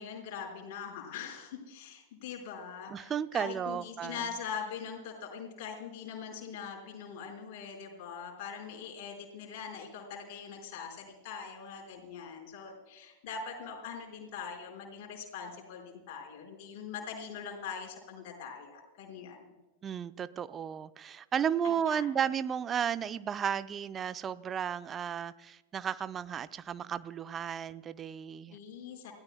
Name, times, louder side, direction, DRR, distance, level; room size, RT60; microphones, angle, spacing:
voice 1, 0.0-19.4 21.6-22.1 28.5-29.1, left 6 dB, 45° left, 0 dB, 4.7 m, -42 dB
voice 2, 2.9-4.3 19.8-28.6, right 8 dB, 25° right, 14 dB, 0.6 m, -34 dB
29.0 x 16.5 x 2.2 m, 1.1 s
figure-of-eight pair, 90°, 0 cm